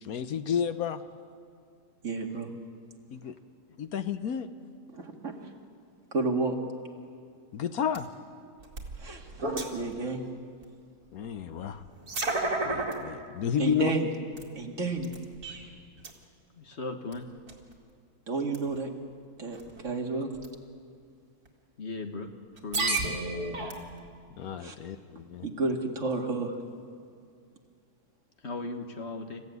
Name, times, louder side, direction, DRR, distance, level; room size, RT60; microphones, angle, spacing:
voice 1, 0.0-1.0 3.1-3.3 3.8-4.5 7.5-8.1 11.1-11.8 12.6-13.9 24.4-25.5, left 8 dB, 70° left, 11 dB, 1.3 m, -31 dB
voice 2, 2.0-2.5 4.9-5.3 6.1-6.5 9.0-10.2 13.6-14.1 14.6-15.1 18.3-18.9 19.4-20.3 24.6-24.7 25.4-26.5, right 3 dB, 55° right, 1 dB, 2.5 m, -31 dB
sound 1, 7.9-8.0 8.6-9.9 10.6-10.7 11.8-12.9 13.6-13.7 14.4-14.5 15.0-15.7 16.0-16.1 17.1-17.2 17.5-17.7 18.5-18.8 19.5-19.8 20.4-20.5 21.5-21.6 22.6-24.1, right 2 dB, 70° right, 2.8 m, -32 dB
voice 3, 16.6-17.3 21.8-22.3 22.6-23.0 28.4-29.4, left 3 dB, 45° left, 6 dB, 1.6 m, -37 dB
28.0 x 15.0 x 9.4 m, 2.3 s
omnidirectional pair, 1.6 m